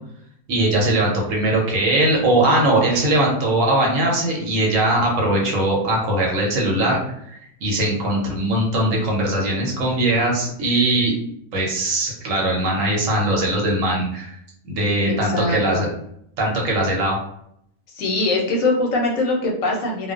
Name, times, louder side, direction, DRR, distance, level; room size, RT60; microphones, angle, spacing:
voice 1, 0.5-7.0 7.6-11.1 11.5-14.4 14.6-15.9 16.4-17.2, right 1 dB, 65° right, -2 dB, 1.1 m, -20 dB
voice 2, 15.1-15.8 17.9-20.1, left 2 dB, 70° left, -1 dB, 0.9 m, -22 dB
2.4 x 2.2 x 2.4 m, 0.72 s
omnidirectional pair, 1.6 m